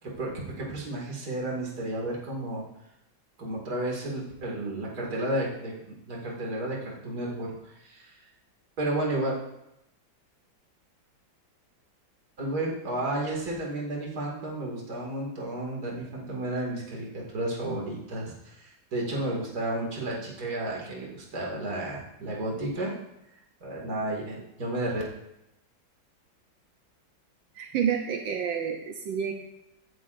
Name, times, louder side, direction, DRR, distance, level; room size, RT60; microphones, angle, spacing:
voice 1, 0.0-2.6 3.4-8.3 8.8-9.4 12.4-23.0 23.6-25.0, right 1 dB, 50° right, -3 dB, 2.9 m, -32 dB
voice 2, 27.5-29.3, right 8 dB, 75° right, 3 dB, 1.7 m, -29 dB
17.0 x 11.0 x 2.6 m, 0.84 s
omnidirectional pair, 2.1 m